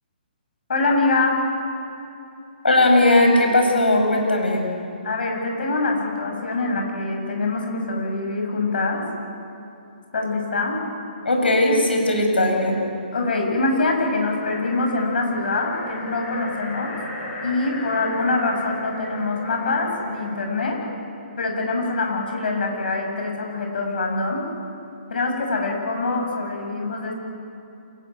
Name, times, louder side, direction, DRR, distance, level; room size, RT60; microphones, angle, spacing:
voice 1, 0.7-1.4 5.0-9.0 10.1-10.8 13.1-16.9 17.4-20.8 21.4-24.4 25.1-27.1, left 3 dB, 65° left, 1 dB, 7.4 m, -24 dB
voice 2, 2.6-4.7 11.2-12.8, left 1 dB, 85° left, 2 dB, 6.6 m, -18 dB
sound 1, 13.9-20.4, left 1 dB, 20° left, 7.2 m, -36 dB
27.5 x 14.5 x 9.4 m, 2.7 s
figure-of-eight pair, 135°, 5 cm